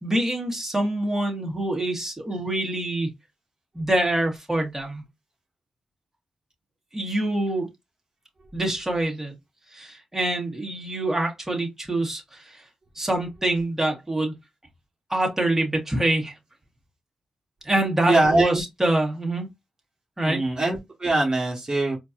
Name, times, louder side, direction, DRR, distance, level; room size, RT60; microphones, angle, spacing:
voice 1, 0.0-3.1 3.7-5.0 6.9-7.7 8.5-9.3 9.7-12.6 13.0-14.3 15.1-16.3 17.6-19.5 20.2-20.4, right 1 dB, 15° right, 1.9 m, -25 dB
voice 2, 18.1-18.6 20.2-22.0, right 2 dB, 45° right, 1.4 m, -22 dB
4.4 x 2.8 x 2.5 m
cardioid pair, 50°, 2 cm